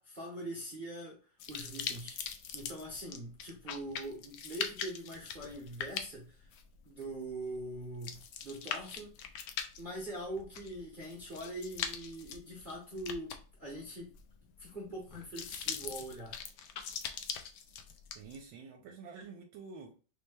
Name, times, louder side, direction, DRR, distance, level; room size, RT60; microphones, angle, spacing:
voice 1, 0.0-2.2 2.5-6.5 6.8-9.2 9.8-14.1 14.6-16.4, right 1 dB, 40° right, 0.8 m, -43 dB
sound 1, 1.4-18.4, left 7 dB, 80° left, 0.8 m, -42 dB
voice 2, 18.1-19.9, right 5 dB, 80° right, 1.3 m, -48 dB
4.3 x 2.2 x 3.2 m
omnidirectional pair, 2.1 m